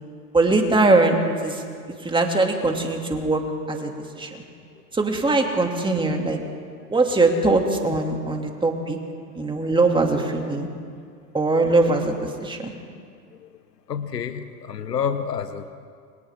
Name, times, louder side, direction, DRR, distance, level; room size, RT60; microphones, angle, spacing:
voice 1, 0.3-1.2 1.4-1.6 2.0-4.3 4.9-6.4 6.9-9.0 9.4-10.7 11.3-12.7, right 2 dB, 10° right, 3 dB, 2.6 m, -21 dB
voice 2, 13.9-15.7, left 7 dB, 85° left, 10 dB, 1.5 m, -28 dB
29.0 x 25.5 x 3.7 m, 2.2 s
hypercardioid pair, 105°, 47 cm